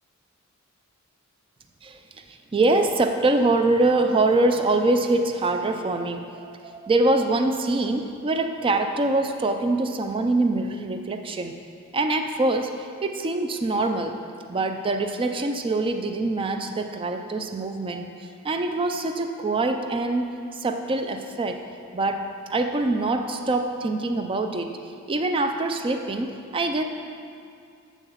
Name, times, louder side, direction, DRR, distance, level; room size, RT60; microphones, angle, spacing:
voice 1, 2.3-11.6 11.9-14.2 14.5-21.6 21.9-24.8 25.1-26.8, right 2 dB, 25° right, 6 dB, 0.4 m, -24 dB
7.3 x 6.8 x 5.6 m, 2.4 s
head